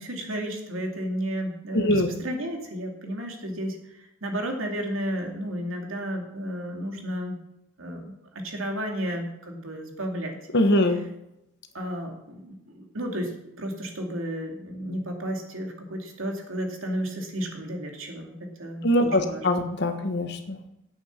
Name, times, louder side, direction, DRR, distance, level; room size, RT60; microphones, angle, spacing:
voice 1, 0.0-7.4 7.8-10.4 11.7-19.4, equal, 70° right, 2 dB, 2.5 m, -33 dB
voice 2, 1.7-2.1 10.5-11.0 18.8-20.6, left 1 dB, 50° left, 7 dB, 1.3 m, -22 dB
10.0 x 8.5 x 5.9 m, 0.85 s
head